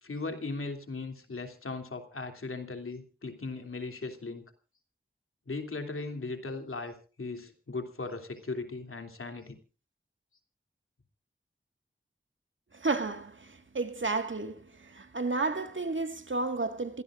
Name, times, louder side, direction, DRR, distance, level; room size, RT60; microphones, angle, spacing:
voice 1, 0.0-4.5 5.5-9.6, left 3 dB, 80° left, 3.0 m, -38 dB
voice 2, 12.7-17.0, right 3 dB, 65° right, 1.9 m, -32 dB
27.5 x 17.0 x 2.6 m
cardioid pair, 40°, 21 cm